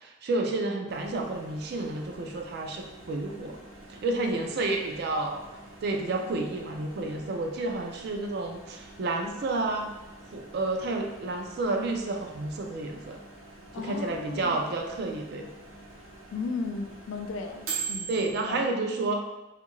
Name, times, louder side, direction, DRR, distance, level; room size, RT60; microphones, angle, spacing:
voice 1, 0.0-3.6 3.9-5.4 5.8-9.9 10.3-13.2 13.8-15.5 18.1-19.4, right 2 dB, 55° right, 3 dB, 0.4 m, -30 dB
Microwave oven, 0.9-18.6, right 4 dB, 90° right, 0.8 m, -44 dB
voice 2, 13.7-14.6 16.3-18.1 18.5-18.7, left 4 dB, 80° left, 5 dB, 0.3 m, -35 dB
2.7 x 2.4 x 3.0 m, 1.0 s
head